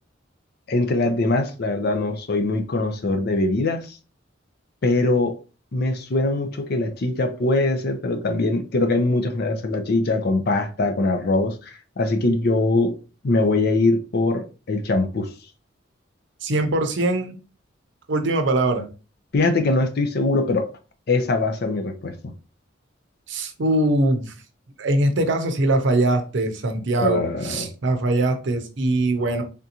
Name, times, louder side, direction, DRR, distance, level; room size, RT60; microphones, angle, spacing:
voice 1, 0.7-4.0 4.8-5.4 5.7-12.9 13.2-15.3 19.3-20.7 21.1-22.3 27.0-27.7, left 2 dB, 55° left, 0.5 m, -22 dB
voice 2, 16.4-17.4 18.1-18.9 23.3-24.3 24.8-29.4, right 2 dB, 65° right, 0.6 m, -22 dB
3.5 x 2.5 x 2.8 m
head